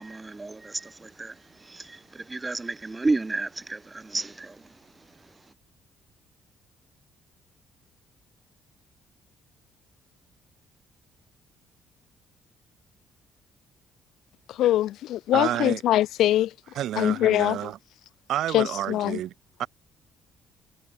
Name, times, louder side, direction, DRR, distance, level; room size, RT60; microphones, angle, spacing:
voice 1, 0.0-5.3, right 3 dB, 15° right, 0.9 m, -32 dB
voice 2, 14.5-16.5 17.0-17.7 18.5-19.2, left 13 dB, 70° left, 0.4 m, -23 dB
voice 3, 15.3-15.8 16.8-17.8 18.3-19.3 19.6-19.7, right 12 dB, 65° right, 1.9 m, -29 dB
cardioid pair, 155°, 0 cm